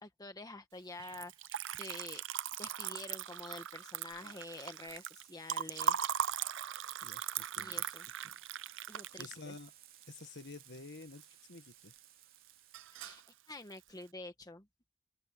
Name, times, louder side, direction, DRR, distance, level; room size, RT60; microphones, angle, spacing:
voice 1, 0.0-2.2 2.6-6.0 7.6-8.1 8.9-9.5 12.9-14.7, left 2 dB, 20° left, 1.3 m, -48 dB
sound 1, 0.8-13.3, right 11 dB, 45° right, 2.8 m, -62 dB
sound 2, 1.0-2.9 3.2-3.4, right 4 dB, 20° right, 2.2 m, -62 dB
Liquid, 1.0-11.2 11.6-12.2 12.5-13.3, right 9 dB, 65° right, 0.6 m, -39 dB
voice 2, 7.0-7.9 8.2-8.4 9.2-9.7 10.1-12.0, left 3 dB, 55° left, 1.7 m, -51 dB
open air
head